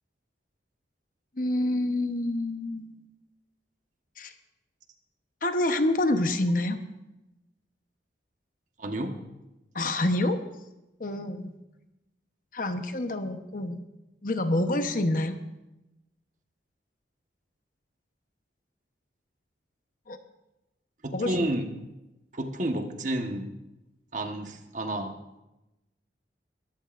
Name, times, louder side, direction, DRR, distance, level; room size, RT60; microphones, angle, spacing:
voice 1, 1.4-3.0 4.2-4.3 5.4-6.8 9.7-10.4 11.0-11.5 12.5-13.8 14.2-15.4 20.1-20.2 21.1-21.3, left 1 dB, 45° left, 7 dB, 1.0 m, -27 dB
voice 2, 8.8-9.2 21.0-21.7 22.3-23.5 24.1-25.1, right 1 dB, 45° right, 5 dB, 1.3 m, -30 dB
22.0 x 14.5 x 2.6 m, 0.96 s
head